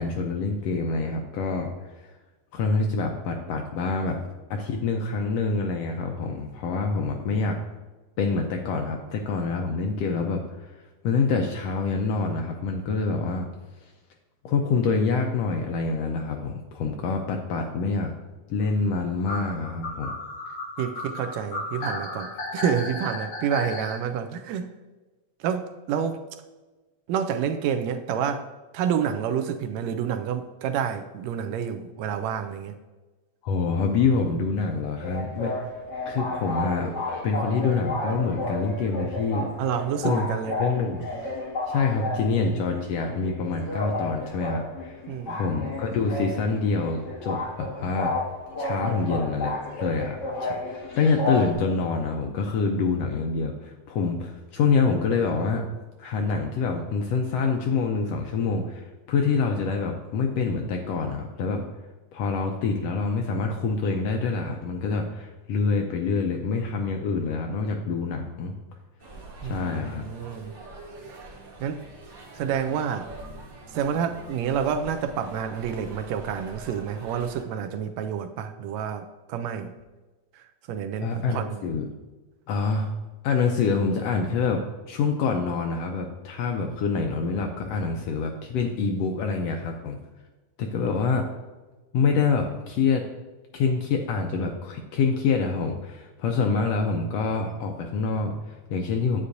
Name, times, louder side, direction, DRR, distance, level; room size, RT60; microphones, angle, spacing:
voice 1, 0.0-2.1 2.5-4.2 4.5-7.6 8.2-13.5 13.8-13.9 14.4-18.1 18.5-20.1 33.4-35.5 36.1-36.9 37.2-39.5 40.0-40.3 40.6-41.1 41.7-48.1 48.6-55.6 56.0-61.6 62.1-68.6 69.4-70.0 81.0-81.9 82.5-82.9 83.2-90.0 90.6-91.2 91.9-93.0 93.5-99.2, left 4 dB, 75° left, 1.5 m, -26 dB
sound 1, 19.3-24.0, left 2 dB, 55° left, 2.5 m, -33 dB
voice 2, 20.8-24.7 25.4-26.2 27.1-28.5 28.7-32.8 39.6-40.5 45.1-45.4 69.4-70.5 71.6-71.8 72.3-73.1 73.7-79.7 80.7-81.6 90.8-91.0, right 8 dB, 80° right, 1.7 m, -29 dB
sound 2, 35.0-51.5, left 2 dB, 40° left, 2.2 m, -32 dB
sound 3, 69.0-77.4, right 2 dB, 50° right, 1.6 m, -44 dB
9.8 x 8.1 x 2.6 m
omnidirectional pair, 3.3 m